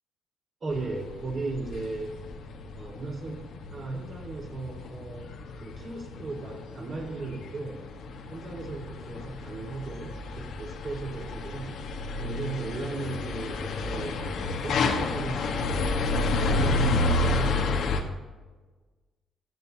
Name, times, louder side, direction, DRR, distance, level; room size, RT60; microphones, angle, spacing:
voice 1, 0.6-2.2 2.7-3.4 3.7-7.8 8.3-11.8 12.2-15.9 16.4-18.0, right 3 dB, 45° right, -1 dB, 4.1 m, -37 dB
sound 1, 0.7-18.0, left 2 dB, 75° left, 1.4 m, -30 dB
15.5 x 9.9 x 2.8 m, 1.3 s
cardioid pair, 90°, 0 cm